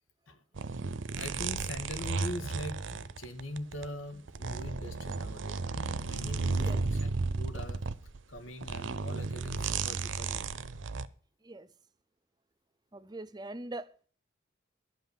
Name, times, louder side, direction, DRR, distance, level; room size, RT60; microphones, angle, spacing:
voice 1, 0.3-0.8 1.2-7.8 8.3-10.4, left 1 dB, 85° left, 2.0 m, -42 dB
sound 1, 0.5-3.8 4.3-11.1, right 4 dB, 70° right, 0.7 m, -34 dB
voice 2, 11.4-11.7 12.9-14.1, right 2 dB, 20° right, 0.6 m, -42 dB
12.5 x 5.8 x 9.4 m
head